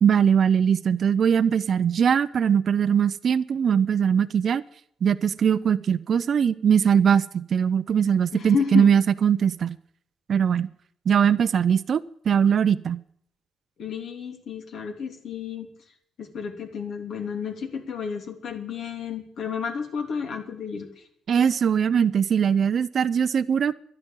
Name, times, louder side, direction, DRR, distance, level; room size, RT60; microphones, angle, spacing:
voice 1, 0.0-4.6 5.0-9.7 10.3-10.7 11.1-12.0 12.3-13.0 21.3-23.7, right 7 dB, 55° right, 14 dB, 0.6 m, -21 dB
voice 2, 8.3-8.9 13.8-15.7 16.2-20.9, left 6 dB, 65° left, 3 dB, 3.0 m, -31 dB
12.0 x 11.0 x 9.0 m, 0.66 s
cardioid pair, 90°, 0 cm